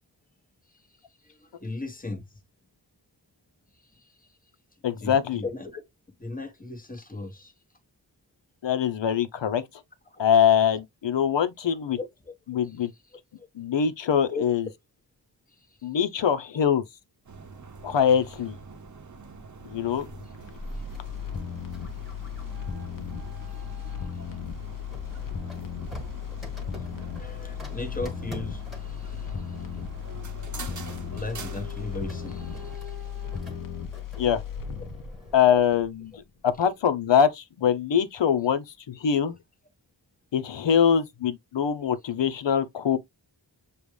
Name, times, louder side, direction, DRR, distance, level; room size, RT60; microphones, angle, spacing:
voice 1, 1.2-2.2 3.9-4.3 5.0-5.8 6.2-7.5 10.1-10.2 12.0-12.3 12.6-12.7 13.4-13.5 14.3-14.4 15.6-15.9 23.9-24.1 27.2-29.6 31.1-33.0 33.4-33.7, left 3 dB, 20° left, 1.2 m, -37 dB
voice 2, 4.8-5.4 8.6-9.6 10.2-12.0 12.5-12.9 13.6-14.7 15.8-16.8 17.8-18.6 19.6-20.1 34.2-34.4 35.3-36.1 36.4-39.3 40.3-43.0, left 8 dB, 80° left, 0.7 m, -23 dB
sound 1, 17.2-32.8, right 4 dB, 40° right, 0.8 m, -44 dB
sound 2, 20.1-36.2 36.5-36.6, left 8 dB, 45° left, 0.7 m, -36 dB
Printer, 20.9-24.2 24.9-35.5, left 1 dB, ahead, 1.7 m, -47 dB
6.9 x 2.4 x 3.2 m
wide cardioid pair, 110°, 44 cm